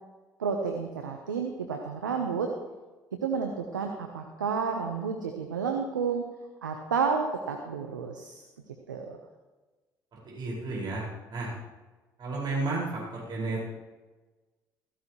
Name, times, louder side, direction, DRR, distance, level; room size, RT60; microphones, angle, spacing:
voice 1, 0.4-2.5 3.2-6.2 6.6-8.4 8.9-9.2, right 5 dB, 90° right, 4 dB, 0.9 m, -31 dB
voice 2, 10.1-11.5 12.2-13.7, right 3 dB, 45° right, -4 dB, 5.4 m, -33 dB
15.5 x 15.0 x 3.2 m, 1.2 s
hypercardioid pair, 55°, 10 cm